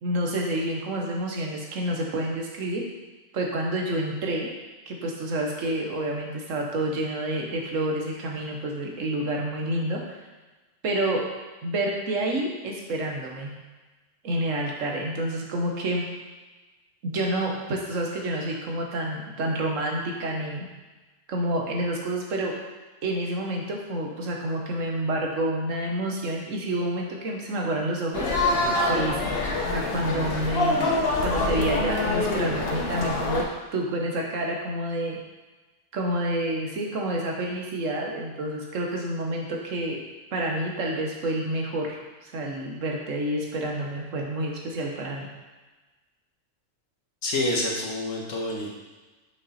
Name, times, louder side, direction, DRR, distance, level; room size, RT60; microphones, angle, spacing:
voice 1, 0.0-2.9 3.3-4.5 4.9-10.2 10.8-11.2 11.6-13.6 14.2-16.1 17.0-20.7 21.3-22.6 23.0-28.3 28.9-35.2 35.9-40.0 40.3-42.0 42.2-45.3, right 1 dB, 80° right, 0 dB, 1.5 m, -29 dB
sound 1, 28.1-33.4, left 2 dB, 55° left, 1.0 m, -25 dB
voice 2, 47.2-48.8, left 1 dB, 80° left, -1 dB, 1.6 m, -27 dB
6.0 x 5.4 x 4.2 m, 1.2 s
omnidirectional pair, 1.3 m